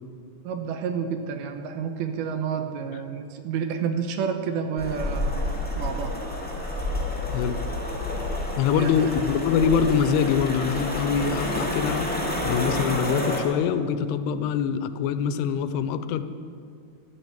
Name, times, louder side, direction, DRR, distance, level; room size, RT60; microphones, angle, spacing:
voice 1, 0.4-5.5 5.8-6.2 8.7-9.1, right 6 dB, 75° right, 6 dB, 2.7 m, -30 dB
sound 1, 4.8-13.4, left 1 dB, 10° left, 0.6 m, -29 dB
voice 2, 8.6-12.1 12.4-16.2, left 7 dB, 85° left, 11 dB, 2.8 m, -24 dB
12.5 x 12.0 x 8.0 m, 2.4 s
omnidirectional pair, 4.7 m